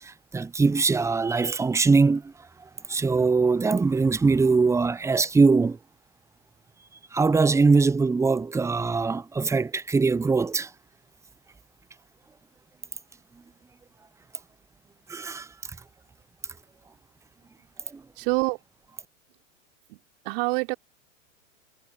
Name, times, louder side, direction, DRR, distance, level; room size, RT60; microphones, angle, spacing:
voice 1, 0.0-2.3 2.9-5.8 7.1-10.7 15.1-15.5 17.9-18.0, right 4 dB, 10° right, 0.8 m, -22 dB
voice 2, 18.2-18.6 19.9-20.0 20.3-20.8, right 29 dB, 50° right, 3.5 m, -25 dB
figure-of-eight pair, 95°, 37 cm